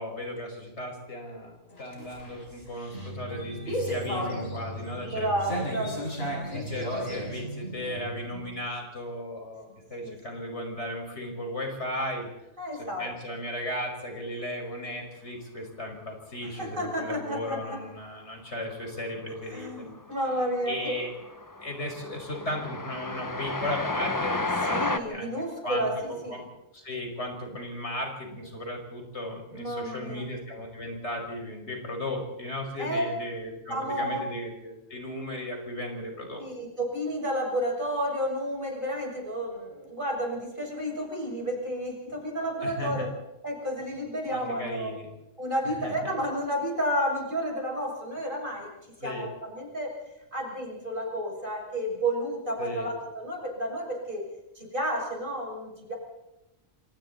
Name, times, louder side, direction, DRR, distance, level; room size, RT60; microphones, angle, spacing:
voice 1, 0.0-5.8 6.5-12.3 12.8-19.9 20.7-21.2 21.6-25.3 25.6-26.4 26.7-36.5 42.6-43.1 44.3-45.1 45.8-46.1 49.0-49.3 52.6-52.9, left 1 dB, 90° left, 2 dB, 5.8 m, -36 dB
sound 1, 1.7-8.5, equal, 65° left, 6.3 m, -34 dB
voice 2, 5.0-6.6 10.0-10.2 12.6-13.1 16.4-17.8 19.5-21.0 24.6-26.4 29.5-30.3 32.8-33.1 33.7-34.2 36.4-43.1 43.4-44.9 45.4-48.7 49.0-49.9 50.3-54.3 54.5-55.9, equal, 50° right, 0 dB, 6.5 m, -31 dB
Train, 19.3-19.8 20.1-25.0, left 2 dB, 20° left, 1.0 m, -32 dB
26.5 x 26.5 x 4.1 m, 0.96 s
omnidirectional pair, 1.1 m